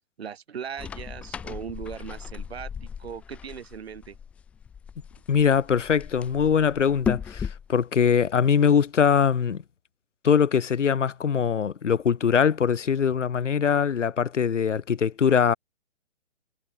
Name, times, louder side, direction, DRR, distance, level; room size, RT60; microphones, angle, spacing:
voice 1, 0.2-4.2, right 7 dB, 60° right, 2.5 m, -38 dB
sound 1, 0.8-7.7, left 7 dB, 5° left, 1.0 m, -36 dB
voice 2, 5.3-9.6 10.2-15.5, left 7 dB, 90° left, 1.8 m, -22 dB
hypercardioid pair, 175°, 36 cm